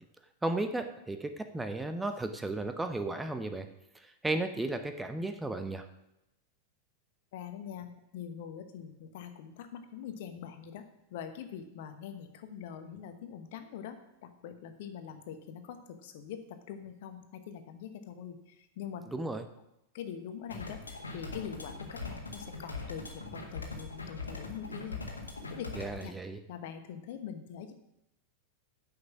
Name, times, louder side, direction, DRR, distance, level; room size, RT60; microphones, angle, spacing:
voice 1, 0.4-3.7 3.9-5.9 19.1-19.4 25.7-26.4, right 2 dB, 10° right, 7 dB, 0.8 m, -34 dB
voice 2, 7.3-10.8 11.1-19.1 19.9-25.0 25.5-25.7 26.0-26.1 26.5-27.7, left 8 dB, 50° left, 8 dB, 1.1 m, -43 dB
sound 1, 20.5-26.0, left 3 dB, 75° left, 1.6 m, -41 dB
9.7 x 6.6 x 6.0 m, 0.86 s
figure-of-eight pair, 90°, 0 cm